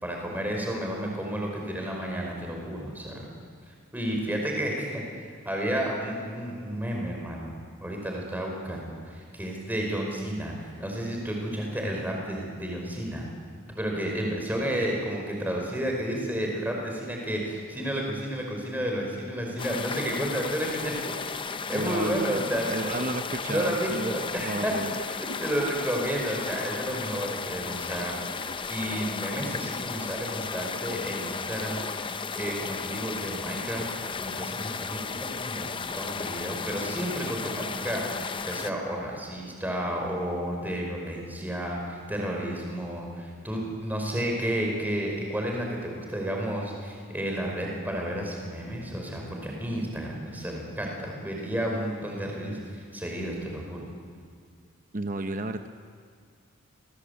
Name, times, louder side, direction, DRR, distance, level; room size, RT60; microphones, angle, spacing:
voice 1, 0.0-3.2 3.9-5.0 5.4-13.3 13.7-21.1 21.7-23.1 23.5-24.7 25.1-28.2 28.7-31.8 32.3-33.9 34.2-38.0 38.4-53.9, equal, 10° right, 0 dB, 5.1 m, -31 dB
sound 1, 19.6-38.7, left 5 dB, 20° left, 0.6 m, -34 dB
voice 2, 21.7-24.1 24.4-24.9 54.9-55.7, right 2 dB, 35° right, 7 dB, 0.8 m, -32 dB
28.0 x 20.5 x 8.3 m, 2.1 s
head